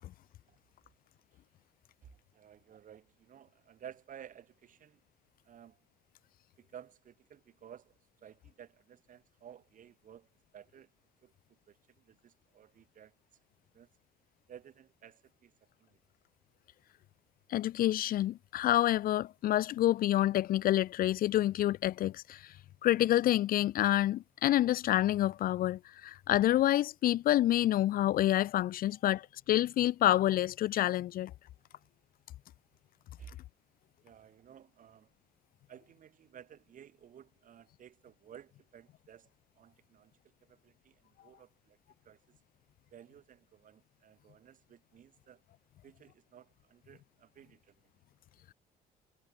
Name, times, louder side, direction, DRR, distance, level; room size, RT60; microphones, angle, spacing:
voice 1, 2.0-5.0 5.4-5.8 6.6-7.9 8.2-10.9 11.2-11.3 11.7-13.1 13.7-13.9 14.5-15.5 15.8-16.0 31.7-31.8 33.2-33.4 34.0-35.1 35.7-39.3 39.6-40.1 40.5-41.8 42.0-42.2 42.9-45.4 45.8-47.9, right 9 dB, 50° right, 5.5 m, -55 dB
voice 2, 17.5-22.5 22.8-31.3, left 13 dB, 60° left, 0.6 m, -28 dB
cardioid pair, 110°, 17 cm